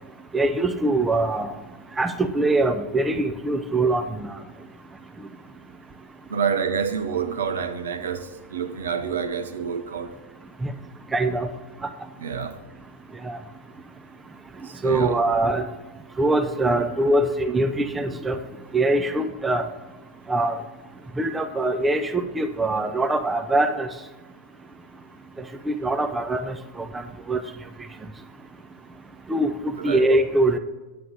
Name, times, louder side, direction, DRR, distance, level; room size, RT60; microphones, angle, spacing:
voice 1, 0.3-1.5 2.0-4.3 10.6-10.7 11.1-11.5 13.2-13.4 14.8-15.7 16.2-18.4 18.7-19.6 20.3-20.6 21.2-23.9 25.7-26.9 27.3-27.4 29.3-29.5 29.8-30.6, right 2 dB, 10° right, 0.7 m, -23 dB
voice 2, 6.3-10.2 12.2-12.6 14.6-15.2 29.7-30.1, right 7 dB, 65° right, 0.7 m, -28 dB
9.4 x 8.7 x 3.9 m
figure-of-eight pair, 90°, 0 cm